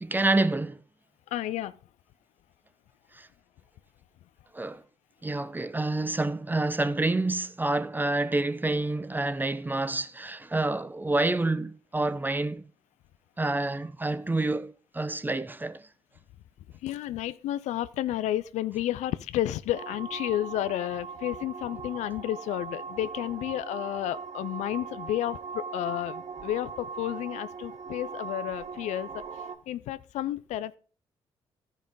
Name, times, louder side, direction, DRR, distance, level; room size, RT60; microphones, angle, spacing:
voice 1, 0.0-0.8 3.1-3.3 4.5-4.8 5.2-12.7 13.4-15.8, right 2 dB, 15° right, 0.6 m, -28 dB
voice 2, 1.3-1.8 16.8-29.3 29.7-30.8, left 13 dB, 75° left, 0.4 m, -31 dB
sound 1, 19.7-29.6, right 5 dB, 60° right, 1.0 m, -40 dB
14.0 x 5.3 x 3.6 m
hypercardioid pair, 50°, 12 cm